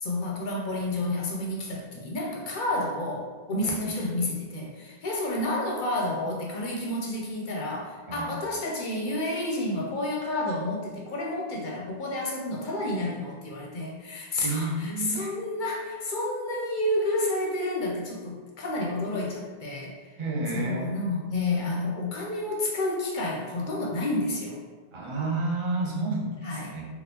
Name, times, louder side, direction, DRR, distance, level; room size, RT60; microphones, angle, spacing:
voice 1, 0.0-19.9 20.5-24.6 26.4-26.7, left 1 dB, 60° left, -2 dB, 0.6 m, -30 dB
voice 2, 14.4-15.3 20.2-20.9 24.9-26.9, right 2 dB, 40° right, -1 dB, 0.4 m, -30 dB
3.4 x 2.3 x 2.8 m, 1.4 s
omnidirectional pair, 1.0 m